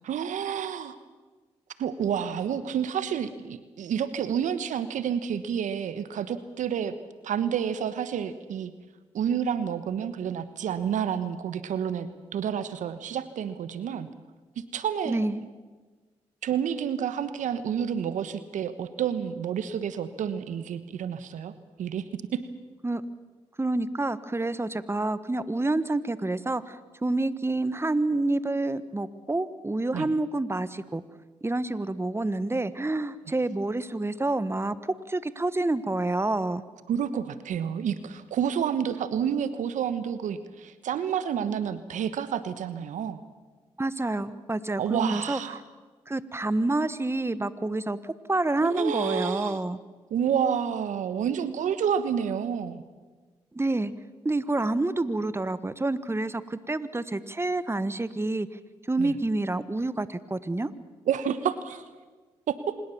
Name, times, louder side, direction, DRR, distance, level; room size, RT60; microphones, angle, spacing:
voice 1, 0.0-0.9 1.8-6.9 7.2-8.7 9.1-14.1 14.6-15.2 16.4-21.5 21.8-22.4 29.9-30.1 36.9-43.2 44.8-45.6 48.6-49.6 50.1-52.8 59.0-59.1 61.1-61.8 62.5-62.7, right 8 dB, 75° right, 13 dB, 1.2 m, -29 dB
voice 2, 15.0-15.4 22.8-23.0 23.6-31.0 31.4-36.6 43.8-45.4 46.1-49.8 53.5-53.9 54.2-58.5 58.9-60.7, right 2 dB, 20° right, 14 dB, 1.4 m, -28 dB
25.5 x 21.0 x 7.1 m, 1.3 s
hypercardioid pair, 40°, 13 cm